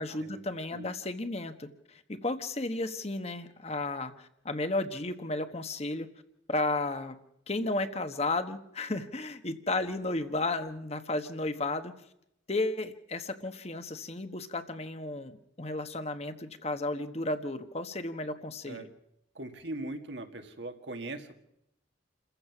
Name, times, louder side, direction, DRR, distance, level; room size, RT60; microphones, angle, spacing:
voice 1, 0.0-6.1 6.5-7.2 7.5-11.9 12.5-18.9, left 2 dB, 35° left, 9 dB, 1.2 m, -33 dB
voice 2, 19.4-21.4, right 2 dB, 70° right, 6 dB, 2.0 m, -40 dB
28.5 x 15.0 x 6.0 m, 0.80 s
head